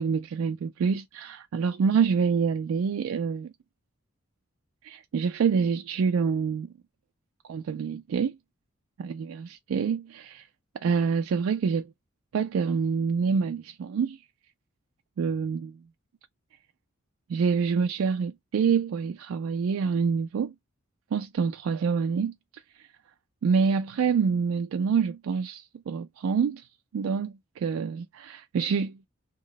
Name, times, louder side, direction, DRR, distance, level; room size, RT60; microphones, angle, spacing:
voice 1, 0.0-3.5 4.8-6.7 7.5-8.4 9.0-10.4 10.8-11.9 12.3-14.2 15.2-15.7 17.3-20.5 21.1-22.3 23.4-26.6 26.9-29.1, right 6 dB, 75° right, 0.3 m, -26 dB
3.0 x 2.1 x 3.9 m
head